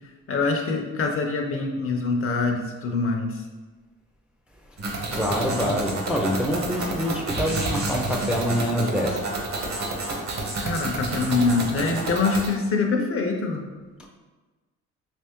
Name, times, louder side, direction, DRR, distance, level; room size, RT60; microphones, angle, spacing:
voice 1, 0.3-3.4 5.5-5.7 10.6-13.6, left 4 dB, 45° left, 3 dB, 0.6 m, -24 dB
sound 1, 4.8-12.5, right 2 dB, 55° right, 0.9 m, -29 dB
voice 2, 5.1-9.3 14.0-14.1, equal, 5° right, 0 dB, 0.4 m, -26 dB
3.4 x 3.0 x 2.9 m, 1.3 s
supercardioid pair, 70°, 32 cm